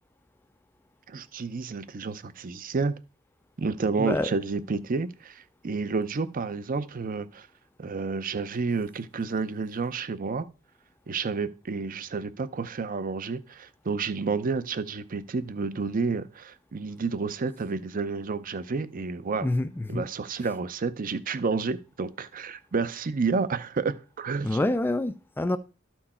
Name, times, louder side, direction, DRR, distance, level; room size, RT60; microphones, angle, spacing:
voice 1, 1.1-2.9 3.6-7.5 7.8-10.5 11.1-19.5 19.9-24.6, right 4 dB, 45° right, 0.5 m, -30 dB
voice 2, 4.0-4.3 19.4-20.1 24.4-25.6, left 1 dB, 10° left, 0.3 m, -27 dB
12.5 x 4.6 x 4.3 m
head